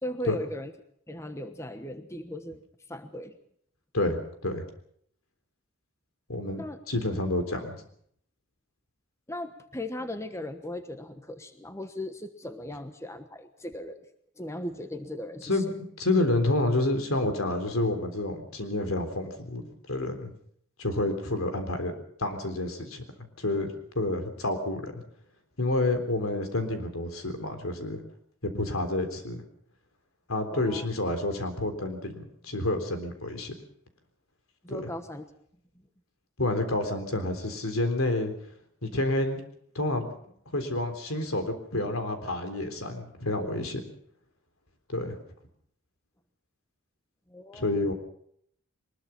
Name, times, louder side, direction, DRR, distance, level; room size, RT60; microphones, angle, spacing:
voice 1, 0.0-0.7 1.1-2.6 2.9-3.4 6.6-6.8 9.3-14.0 14.4-15.6 30.5-30.9 34.6-35.3 47.3-47.8, left 1 dB, 15° left, 8 dB, 1.2 m, -38 dB
voice 2, 3.9-4.6 6.3-6.6 6.9-7.8 15.4-20.3 20.8-21.9 22.2-25.0 25.6-28.0 28.4-29.4 30.3-33.5 34.7-34.8 36.4-38.3 38.8-39.4 39.8-40.1 40.5-43.8 44.9-45.2 47.5-47.9, left 2 dB, 85° left, 7 dB, 3.7 m, -29 dB
22.5 x 21.0 x 5.9 m, 0.67 s
head